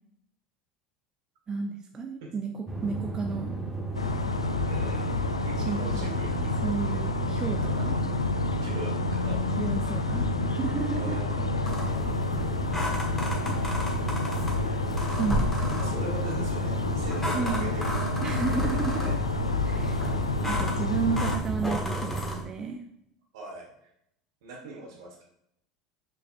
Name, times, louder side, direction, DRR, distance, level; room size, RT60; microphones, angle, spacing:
voice 1, 1.5-3.5 5.6-8.0 9.6-11.2 11.8-11.9 15.2-15.5 17.3-17.7 18.2-19.2 19.6-20.2 20.4-22.8, right 5 dB, 25° right, 3 dB, 0.6 m, -32 dB
sound 1, 2.7-22.4, right 4 dB, 10° right, 1.2 m, -34 dB
sound 2, 3.9-21.4, left 4 dB, 85° left, 0.4 m, -30 dB
voice 2, 4.7-6.5 8.6-9.5 11.0-12.1 14.5-14.9 15.8-18.1 18.5-19.2 23.3-23.7 24.4-25.3, right 2 dB, 60° right, 0 dB, 1.8 m, -42 dB
sound 3, 11.6-22.4, left 1 dB, 10° left, 1.4 m, -34 dB
6.5 x 6.4 x 2.5 m, 0.74 s
figure-of-eight pair, 75°, 3 cm